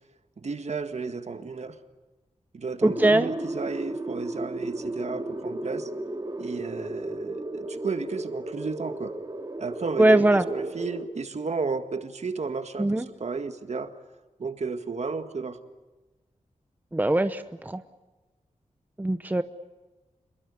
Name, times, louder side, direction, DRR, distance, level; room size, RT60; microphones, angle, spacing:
voice 1, 0.4-1.8 2.5-5.9 6.4-9.2 9.6-13.9 14.4-15.6, right 4 dB, 60° right, 8 dB, 1.8 m, -33 dB
voice 2, 2.8-3.3 10.0-10.5 12.8-13.1 16.9-17.8 19.0-19.4, right 1 dB, 15° right, 10 dB, 0.9 m, -21 dB
sound 1, 2.8-11.1, right 2 dB, 30° right, 2.4 m, -34 dB
27.0 x 22.5 x 8.4 m, 1.2 s
wide cardioid pair, 115°, 13 cm